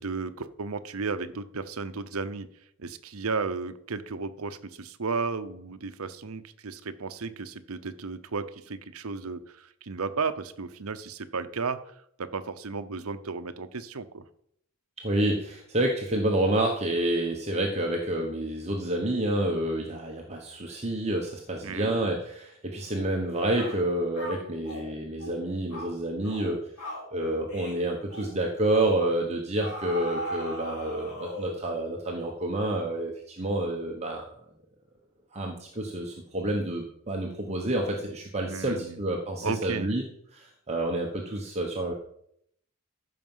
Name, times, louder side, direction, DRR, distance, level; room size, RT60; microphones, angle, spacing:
voice 1, 0.0-2.5 2.8-14.2 21.6-22.1 38.4-39.0 39.4-39.9, right 4 dB, 70° right, 11 dB, 0.8 m, -34 dB
voice 2, 15.0-26.6 27.1-34.2 35.3-40.0 40.3-41.9, right 1 dB, 30° right, 0 dB, 1.2 m, -29 dB
sound 1, 23.0-23.2 23.6-23.8 24.2-24.9 25.2-25.4 25.7-25.9 26.2-26.5 26.8-27.1 27.5-27.8 28.1-28.3 28.8-29.0 29.6-31.7, left 1 dB, 90° left, 4.5 m, -38 dB
14.5 x 5.9 x 5.6 m, 0.71 s
head